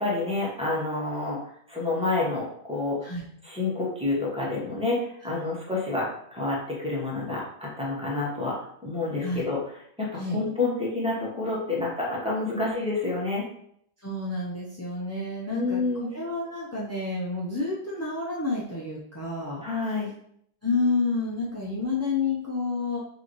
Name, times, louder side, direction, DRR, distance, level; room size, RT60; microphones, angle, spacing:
voice 1, 0.0-1.4 1.7-3.1 3.4-9.6 10.0-13.4 15.5-16.1 19.6-20.1, left 3 dB, 5° right, -6 dB, 1.1 m, -28 dB
voice 2, 14.0-19.6 20.6-23.0, left 3 dB, 20° left, -6 dB, 0.4 m, -29 dB
5.1 x 2.8 x 3.1 m, 0.68 s
omnidirectional pair, 1.3 m